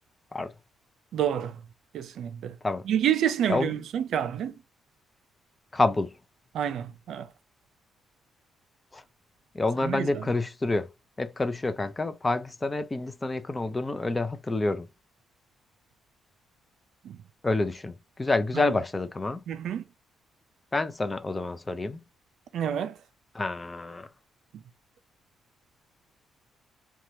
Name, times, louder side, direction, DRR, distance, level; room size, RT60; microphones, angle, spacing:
voice 1, 1.1-1.6 1.9-2.5 2.9-4.5 6.5-7.3 9.8-10.2 17.0-17.2 18.5-18.7 19.5-19.8 22.5-22.9, right 9 dB, 70° right, 0.4 m, -28 dB
voice 2, 5.7-6.1 8.9-9.0 9.5-10.9 11.2-14.9 17.4-19.4 20.7-22.0 23.3-24.1, left 2 dB, 20° left, 0.4 m, -28 dB
2.9 x 2.3 x 2.6 m
cardioid pair, 90°, 0 cm